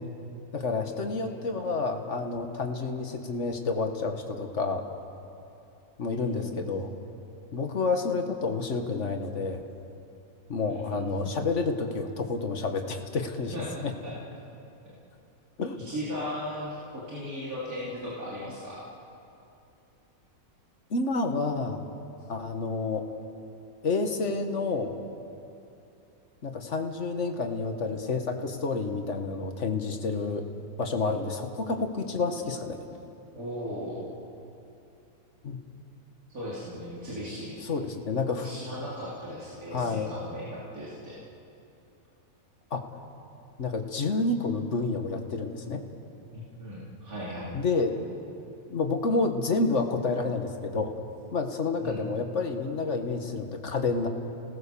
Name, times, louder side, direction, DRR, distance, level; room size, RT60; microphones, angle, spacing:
voice 1, 0.5-4.8 6.0-6.9 7.5-9.6 10.5-13.5 13.8-13.9 15.6-15.8 20.9-21.8 22.3-23.1 23.8-24.9 26.4-30.5 30.8-32.8 35.4-35.6 37.6-38.5 39.7-40.1 42.7-42.8 43.6-45.8 47.5-47.9 48.7-50.9 51.3-54.1, left 3 dB, 50° left, 5 dB, 1.8 m, -29 dB
voice 2, 6.2-6.6 10.6-11.3 13.5-14.1 15.8-18.8 33.3-34.1 36.3-37.6 38.4-41.2 46.3-47.5 51.8-52.0, equal, 65° right, -7 dB, 3.8 m, -37 dB
28.5 x 18.0 x 7.0 m, 2.8 s
omnidirectional pair, 1.6 m